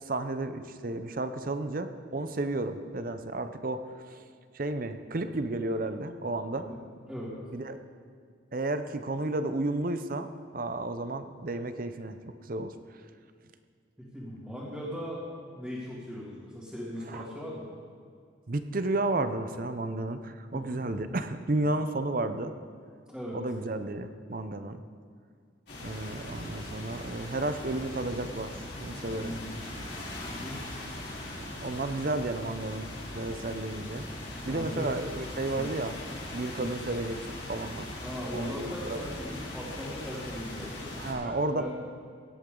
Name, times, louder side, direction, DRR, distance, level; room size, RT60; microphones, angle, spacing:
voice 1, 0.1-4.2 4.5-6.7 7.5-7.8 8.5-12.2 12.4-12.7 17.1-17.2 18.5-22.5 23.3-24.8 25.8-28.5 28.8-29.4 31.3-32.9 33.1-34.0 34.5-36.0 36.3-37.9 38.3-39.0 41.0-41.7, right 2 dB, 45° right, 9 dB, 0.6 m, -32 dB
voice 2, 14.0-15.2 15.5-17.7 20.5-20.8 23.1-23.4 29.2-29.6 30.3-30.6 34.5-34.9 35.5-35.7 36.6-36.7 38.0-40.9 41.2-41.7, equal, 5° right, -10 dB, 2.4 m, -39 dB
sound 1, 25.7-41.1, left 1 dB, 55° left, 4.2 m, -40 dB
17.5 x 11.5 x 3.8 m, 2.2 s
head